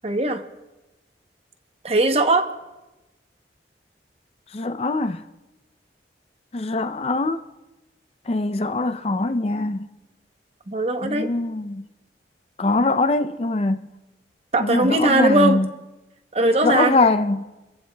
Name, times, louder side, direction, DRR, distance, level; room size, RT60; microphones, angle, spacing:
voice 1, 0.0-0.4 1.8-2.5 10.7-11.3 14.5-15.6 16.3-17.0, right 2 dB, 35° right, 0.8 m, -19 dB
voice 2, 4.5-5.2 6.5-7.4 8.3-9.9 11.0-11.8 12.6-13.8 14.6-15.7 16.6-17.4, left 2 dB, 35° left, 0.4 m, -22 dB
26.5 x 15.0 x 2.2 m
head